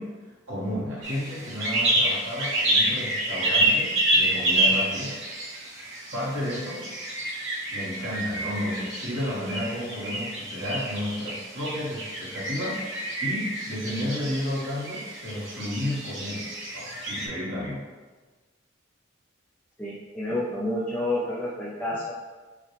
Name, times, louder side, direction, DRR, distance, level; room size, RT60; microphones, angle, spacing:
voice 1, 0.0-5.4 6.1-6.8 7.7-16.4 16.7-17.9, left 1 dB, 80° right, -7 dB, 1.5 m, -32 dB
sound 1, 1.0-17.3, right 1 dB, 65° right, 1.0 m, -28 dB
voice 2, 19.8-22.1, left 1 dB, 10° left, -6 dB, 0.5 m, -29 dB
5.6 x 2.2 x 3.2 m, 1.3 s
head